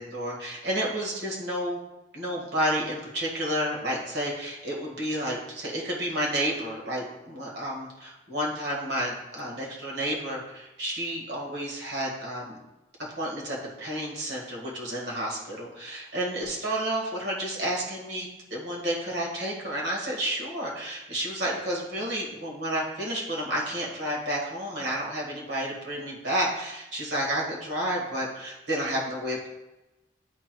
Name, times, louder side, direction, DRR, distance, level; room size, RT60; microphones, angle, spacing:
voice 1, 0.0-1.8 2.1-12.6 13.2-29.5, right 1 dB, 70° right, -2 dB, 1.6 m, -31 dB
9.8 x 4.5 x 2.2 m, 0.98 s
head